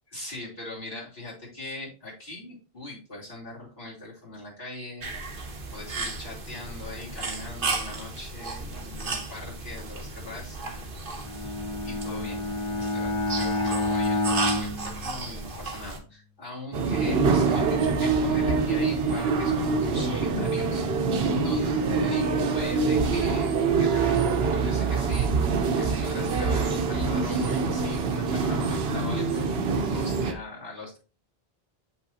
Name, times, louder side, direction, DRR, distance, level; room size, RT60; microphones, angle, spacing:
voice 1, 0.1-5.1 5.7-10.9 11.8-20.9 21.3-31.0, left 2 dB, 55° left, -6 dB, 3.4 m, -41 dB
sound 1, 5.0-16.0, right 3 dB, 60° right, 1.2 m, -34 dB
Bowed string instrument, 11.2-15.8, left 2 dB, 40° left, 0.5 m, -29 dB
sound 2, 16.7-30.3, right 4 dB, 75° right, 1.0 m, -25 dB
7.3 x 5.6 x 2.8 m, 0.34 s
omnidirectional pair, 1.0 m